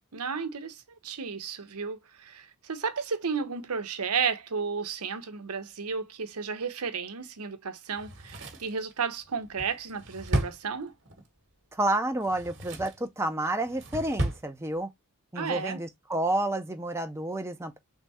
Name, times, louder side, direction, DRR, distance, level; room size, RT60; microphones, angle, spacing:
voice 1, 0.1-10.9 15.4-15.8, right 5 dB, 90° right, 0.9 m, -33 dB
Drawer open or close, 8.0-11.3 12.1-13.1 13.5-14.5 14.8-14.9, right 1 dB, 55° right, 1.3 m, -34 dB
voice 2, 11.7-14.9 15.3-17.8, right 1 dB, 10° right, 0.6 m, -30 dB
3.6 x 3.5 x 4.1 m
head